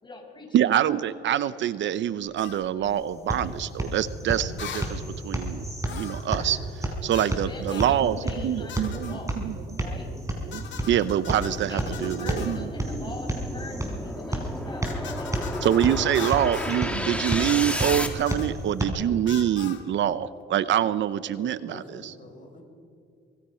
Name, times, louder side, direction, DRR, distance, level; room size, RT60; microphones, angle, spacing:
voice 1, 0.0-0.7 7.2-9.4 9.8-10.1 11.7-16.0, left 2 dB, 25° left, 2 dB, 5.6 m, -42 dB
voice 2, 0.5-9.8 10.4-12.6 15.6-22.1, right 10 dB, 70° right, 15 dB, 0.8 m, -26 dB
sound 1, 2.4-2.6 4.6-4.9 5.9-6.3 7.1-7.4 7.7-8.0 8.7-9.2 10.5-12.6 14.8-16.8 17.3-18.5 19.3-19.8, left 8 dB, 65° left, 2.7 m, -41 dB
sound 2, 2.8-18.8, right 1 dB, 15° right, 5.2 m, -32 dB
sound 3, 6.7-18.1, left 1 dB, 5° left, 2.5 m, -35 dB
voice 3, 21.3-22.6, left 2 dB, 40° left, 0 dB, 7.1 m, -46 dB
25.0 x 22.5 x 5.8 m, 2.3 s
cardioid pair, 90°, 20 cm